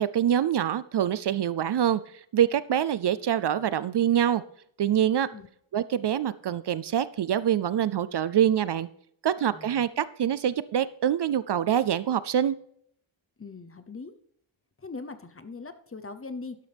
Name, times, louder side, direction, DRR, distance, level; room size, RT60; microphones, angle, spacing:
voice 1, 0.0-2.0 2.3-4.4 4.8-5.3 5.7-8.9 9.2-12.6, right 10 dB, 55° right, 16 dB, 0.5 m, -25 dB
voice 2, 9.5-9.9 13.4-14.2 14.8-16.6, left 4 dB, 25° left, 11 dB, 0.7 m, -40 dB
12.0 x 11.5 x 3.4 m, 0.67 s
wide cardioid pair, 130°, 49 cm